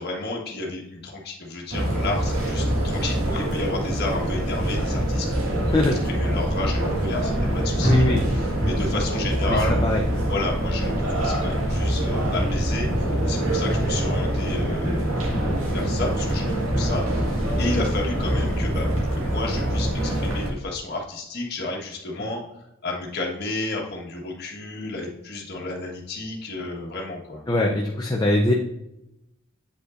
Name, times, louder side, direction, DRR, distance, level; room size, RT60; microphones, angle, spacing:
voice 1, 0.0-7.9 8.3-15.1 15.7-22.4 22.8-27.4, left 2 dB, 50° left, 0 dB, 1.5 m, -32 dB
sound 1, 1.7-20.5, right 1 dB, 85° right, 1.8 m, -24 dB
voice 2, 7.8-8.2 9.5-10.0 22.2-22.3 27.5-28.5, left 1 dB, 20° left, -1 dB, 0.6 m, -22 dB
8.3 x 5.2 x 2.5 m, 0.85 s
head